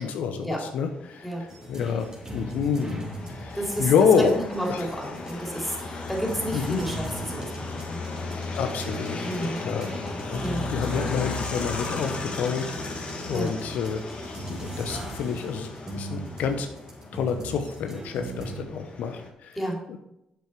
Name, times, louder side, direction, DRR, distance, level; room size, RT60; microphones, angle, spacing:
voice 1, 0.0-1.3 1.7-4.4 4.7-4.9 5.9-6.0 6.5-6.8 8.6-9.2 9.6-9.9 10.3-10.4 10.7-16.7 17.1-19.6 19.9-20.0, left 6 dB, 70° left, 6 dB, 0.7 m, -28 dB
sound 1, 0.9-19.3, left 3 dB, 45° left, 1.8 m, -36 dB
sound 2, 1.5-18.6, right 1 dB, 25° right, 3.1 m, -39 dB
voice 2, 3.5-8.1 9.2-9.7 10.4-10.6 13.3-13.5 19.6-19.8, equal, ahead, -1 dB, 3.7 m, -31 dB
7.7 x 7.0 x 4.6 m, 0.84 s
hypercardioid pair, 45°, 3 cm